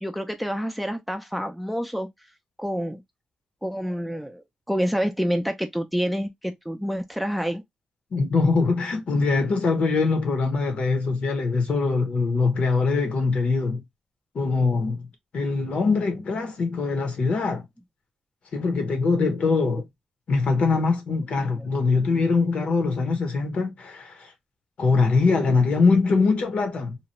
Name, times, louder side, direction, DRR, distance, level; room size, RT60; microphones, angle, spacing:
voice 1, 0.0-2.1 2.6-3.0 3.6-7.6 21.4-21.7, equal, ahead, 0.6 m, -28 dB
voice 2, 8.1-13.8 14.3-15.1 15.3-17.6 18.5-19.8 20.3-24.3 24.8-27.0, left 4 dB, 65° left, 1.1 m, -22 dB
3.0 x 2.3 x 3.0 m
cardioid pair, 80°, 2 cm